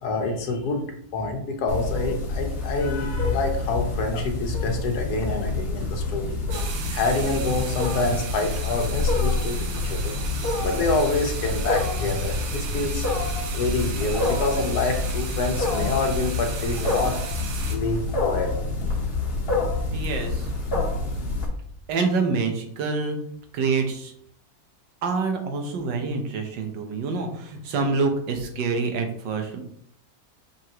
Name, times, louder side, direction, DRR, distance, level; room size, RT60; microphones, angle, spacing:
voice 1, 0.0-0.9 1.1-6.5 6.9-10.2 10.6-13.1 13.5-17.2 17.7-18.6, left 3 dB, 65° left, 3 dB, 1.5 m, -27 dB
Wild animals, 1.7-21.5, left 3 dB, 40° left, 1.2 m, -27 dB
sound 1, 6.5-17.8, right 5 dB, 70° right, 1.5 m, -36 dB
voice 2, 19.9-20.5 21.9-23.2 23.5-24.1 25.0-29.6, right 4 dB, 85° right, 5 dB, 1.7 m, -26 dB
5.9 x 5.5 x 3.0 m, 0.66 s
omnidirectional pair, 1.9 m